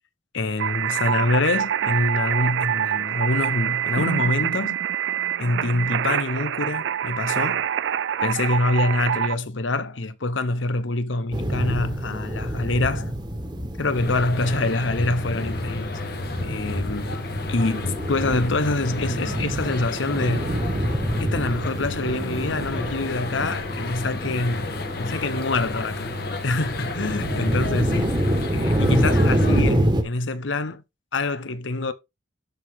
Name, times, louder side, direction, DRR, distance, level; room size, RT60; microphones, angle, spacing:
voice 1, 0.3-4.8 5.4-7.6 8.2-13.1 13.8-16.0 16.4-17.2 17.5-20.6 21.2-28.1 28.5-30.8 31.1-31.9, left 2 dB, 85° left, 0.9 m, -25 dB
sound 1, 0.6-9.4, right 9 dB, 70° right, 0.4 m, -25 dB
sound 2, 11.3-30.0, right 1 dB, 25° right, 1.4 m, -27 dB
sound 3, 13.9-29.6, left 2 dB, 55° left, 1.4 m, -32 dB
12.0 x 4.7 x 3.7 m
head